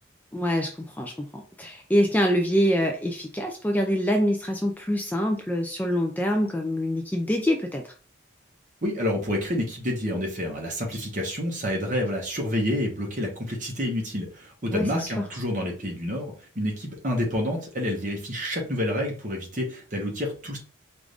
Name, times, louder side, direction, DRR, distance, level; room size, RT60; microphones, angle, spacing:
voice 1, 0.3-7.9 14.7-15.3, equal, 10° left, 3 dB, 0.3 m, -25 dB
voice 2, 8.8-20.6, left 1 dB, 40° right, 0 dB, 1.2 m, -28 dB
4.8 x 2.6 x 3.4 m, 0.38 s
head